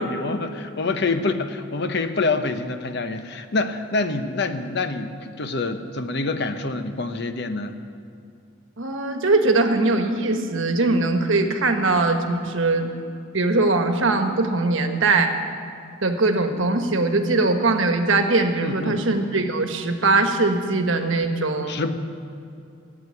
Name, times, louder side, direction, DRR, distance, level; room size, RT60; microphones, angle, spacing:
voice 1, 0.0-7.7 18.6-19.0 21.7-21.9, left 3 dB, 55° left, 8 dB, 0.8 m, -26 dB
voice 2, 8.8-12.9 13.3-15.4 16.0-21.8, right 3 dB, 65° right, 6 dB, 1.2 m, -21 dB
14.5 x 8.3 x 9.6 m, 2.4 s
head